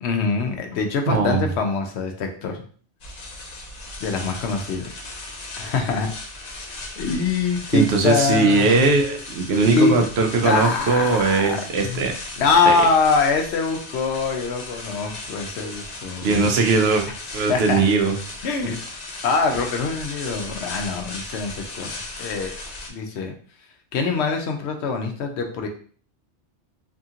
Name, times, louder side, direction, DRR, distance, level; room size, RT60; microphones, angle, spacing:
voice 1, 0.0-2.6 4.0-4.8 5.6-6.1 7.0-8.9 9.6-10.0 10.4-12.0 12.4-16.4 17.5-17.8 18.4-18.8 19.2-21.9 22.2-22.5 22.9-23.3 23.9-25.7, left 4 dB, 75° left, 4 dB, 0.9 m, -23 dB
voice 2, 1.1-1.5 7.7-12.1 12.7-12.8 16.2-17.0 17.3-18.2, right 4 dB, 70° right, 4 dB, 0.8 m, -19 dB
sound 1, 3.0-22.9, left 2 dB, 50° left, 0.6 m, -36 dB
2.8 x 2.4 x 2.7 m, 0.43 s
omnidirectional pair, 1.2 m